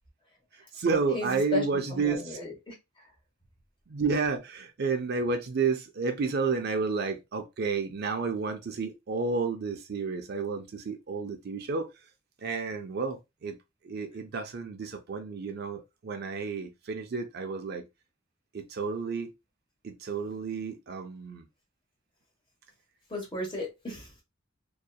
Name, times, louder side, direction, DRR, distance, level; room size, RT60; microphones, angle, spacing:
voice 1, 0.5-2.4 3.9-11.9 12.4-13.6 13.8-17.8 18.5-19.3 19.8-21.4, right 4 dB, 55° right, 0.4 m, -31 dB
voice 2, 1.1-1.6 1.9-2.7 23.1-24.1, left 2 dB, 25° left, 1.1 m, -34 dB
2.8 x 2.3 x 2.2 m
head